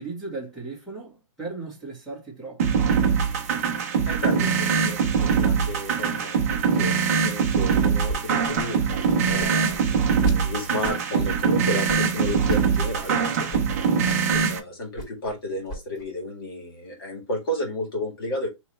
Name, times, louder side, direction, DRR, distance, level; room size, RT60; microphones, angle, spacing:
voice 1, 0.0-2.8, right 3 dB, ahead, 1.3 m, -36 dB
cooking indrustrial music loop Mastering, 2.6-14.6, right 6 dB, 30° right, 0.6 m, -23 dB
voice 2, 4.0-8.9 9.3-14.0 14.5-18.5, left 1 dB, 45° left, 2.0 m, -32 dB
sound 1, 7.7-8.2 8.4-10.4 10.8-11.3 11.9-12.6 12.9-13.1 13.5-13.6 13.9-14.5 14.8-15.4 15.7-16.0, equal, 25° left, 2.8 m, -34 dB
3.3 x 3.1 x 4.2 m
hypercardioid pair, 180°, 16 cm